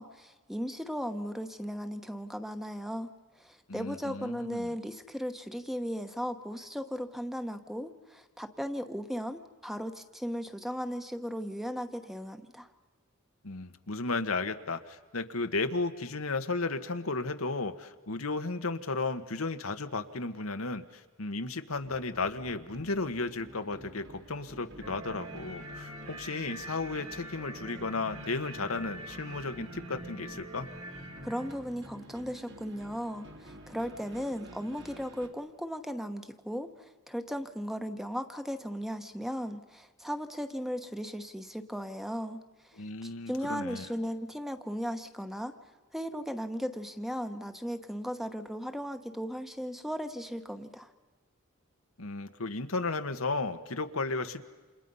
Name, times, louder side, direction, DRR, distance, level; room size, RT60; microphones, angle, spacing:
voice 1, 0.0-12.7 31.2-42.8 43.0-45.5 45.9-50.9, equal, ahead, 7 dB, 1.1 m, -37 dB
voice 2, 3.7-4.7 13.4-30.7 42.8-43.8 52.0-54.5, left 3 dB, 90° left, 7 dB, 1.4 m, -34 dB
sound 1, 21.7-35.3, right 1 dB, 60° right, 2.5 m, -51 dB
sound 2, 24.8-31.5, right 1 dB, 80° right, 5.0 m, -44 dB
29.5 x 27.5 x 5.6 m, 1.3 s
head